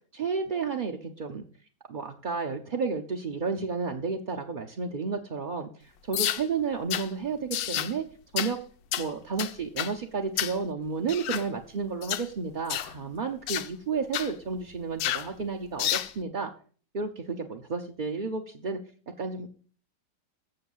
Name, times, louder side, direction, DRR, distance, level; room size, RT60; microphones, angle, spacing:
voice 1, 0.1-1.4 1.9-8.0 8.3-8.6 9.0-16.5 16.9-18.8 19.2-19.5, right 5 dB, 45° right, 2 dB, 0.7 m, -32 dB
sound 1, 6.1-6.4 6.9-7.1 7.5-7.9 8.4-8.5 8.9-9.1 9.4-9.9 10.4-10.6 11.1-11.5 12.0-12.3 12.7-12.9 13.5-13.7 14.1-14.3 15.0-15.3 15.8-16.1, left 12 dB, 90° left, 1.3 m, -30 dB
7.8 x 6.9 x 7.3 m, 0.42 s
omnidirectional pair, 1.8 m